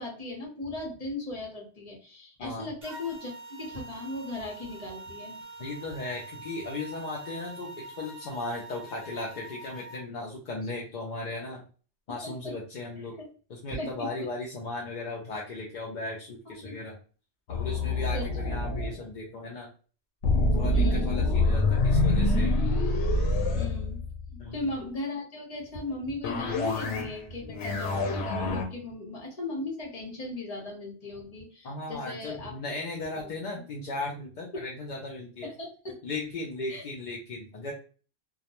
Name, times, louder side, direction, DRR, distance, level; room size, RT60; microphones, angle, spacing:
voice 1, 0.0-5.4 12.1-12.5 13.2-13.3 13.7-14.3 16.5-16.7 18.1-18.7 20.7-21.3 23.6-24.0 24.3-32.5 33.2-33.6 34.5-34.6 35.4-36.0 36.7-36.8, left 2 dB, 35° left, -1 dB, 0.9 m, -37 dB
voice 2, 2.4-2.7 5.6-11.6 12.1-13.1 13.5-17.0 17.5-19.7 20.5-22.5 24.4-24.7 31.6-35.5 36.0-37.7, left 2 dB, 55° left, -2 dB, 0.5 m, -37 dB
sound 1, 2.8-10.0, right 2 dB, 50° right, 0.7 m, -45 dB
sound 2, 17.5-18.9 20.2-24.5 26.2-27.2 27.5-28.7, left 2 dB, 90° left, 0.9 m, -26 dB
2.3 x 2.1 x 2.8 m, 0.39 s
omnidirectional pair, 1.1 m